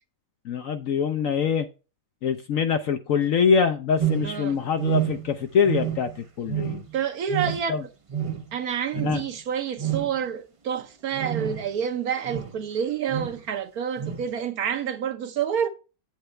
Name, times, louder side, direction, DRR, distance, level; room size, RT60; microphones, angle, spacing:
voice 1, 0.4-1.7 2.2-6.8 7.7-7.8 9.0-9.2, left 6 dB, 65° left, 0.9 m, -24 dB
sound 1, 4.0-4.5 4.8-5.4 5.6-6.2 6.5-7.0 7.3-7.8 8.1-8.6 8.9-9.3 9.8-10.2 11.1-11.7 12.2-12.6 13.1-13.4 14.0-14.3, right 11 dB, 45° right, 0.4 m, -29 dB
voice 2, 4.2-4.6 6.9-7.8 8.5-15.7, right 8 dB, 65° right, 1.2 m, -28 dB
8.0 x 7.8 x 3.2 m
omnidirectional pair, 1.9 m